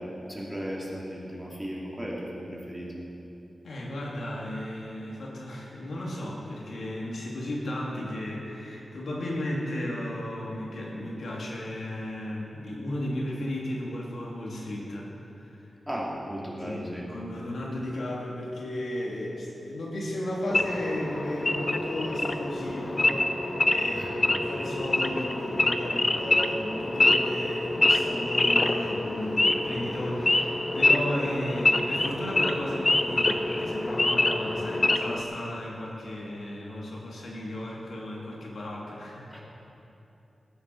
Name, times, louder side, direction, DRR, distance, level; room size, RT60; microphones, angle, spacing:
voice 1, 0.3-3.0 15.9-17.1 23.9-24.1 39.3-39.4, equal, 5° right, -5 dB, 2.7 m, -36 dB
voice 2, 3.6-15.7 16.6-39.4, left 1 dB, 75° left, -3 dB, 2.5 m, -34 dB
Wild animals / Idling, 20.5-35.2, left 2 dB, 25° left, 0.6 m, -26 dB
19.5 x 9.6 x 4.7 m, 2.9 s
wide cardioid pair, 120°, 0 cm